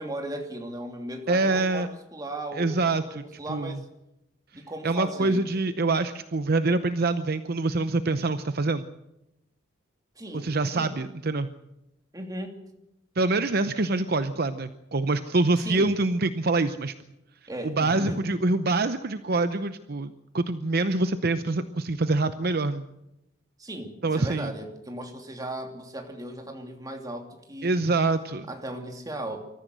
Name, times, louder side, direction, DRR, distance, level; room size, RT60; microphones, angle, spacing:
voice 1, 0.0-3.8 4.5-5.5 10.2-10.9 12.1-12.6 15.6-16.0 17.5-18.2 23.6-27.9 28.5-29.4, right 1 dB, 20° right, 3 dB, 2.8 m, -36 dB
voice 2, 1.3-1.9 2.5-3.2 3.5-3.8 4.5-8.8 10.3-11.5 13.2-16.9 17.6-22.9 24.0-24.5 27.6-28.5, right 3 dB, 50° right, 11 dB, 0.8 m, -25 dB
24.5 x 14.0 x 8.0 m, 0.87 s
head